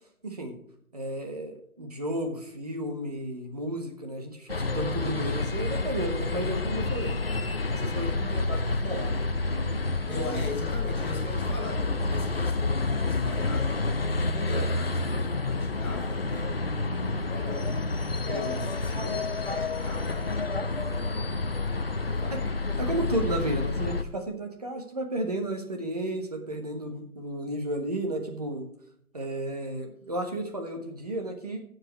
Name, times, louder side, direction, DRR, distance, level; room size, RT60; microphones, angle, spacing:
voice 1, 0.2-0.6 0.9-7.2 7.7-9.3 10.0-10.5 18.2-18.7 22.3-22.4 22.8-28.7 29.1-31.6, right 1 dB, 25° right, 4 dB, 1.4 m, -33 dB
sound 1, 4.5-24.0, left 3 dB, 40° left, 0.6 m, -29 dB
voice 2, 10.0-13.8 14.3-17.7 18.3-20.3 20.9-21.5 22.0-22.5, left 2 dB, 5° left, -17 dB, 2.3 m, -40 dB
14.5 x 7.8 x 3.2 m, 0.69 s
hypercardioid pair, 175°, 43 cm